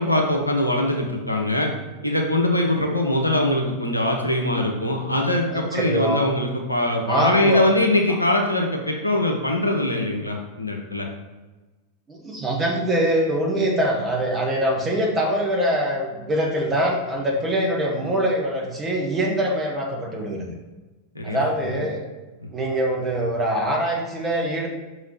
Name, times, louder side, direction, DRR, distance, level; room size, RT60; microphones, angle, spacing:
voice 1, 0.0-1.7 2.0-11.1 21.1-21.4 21.6-21.7 22.4-22.5, left 1 dB, 85° left, 0 dB, 0.9 m, -22 dB
voice 2, 5.5-6.2 7.0-7.7 8.1-8.2 12.1-20.5 21.2-22.0 22.5-24.7, right 1 dB, 20° right, -1 dB, 1.4 m, -23 dB
5.7 x 3.1 x 5.4 m, 1.2 s
figure-of-eight pair, 90°, 0 cm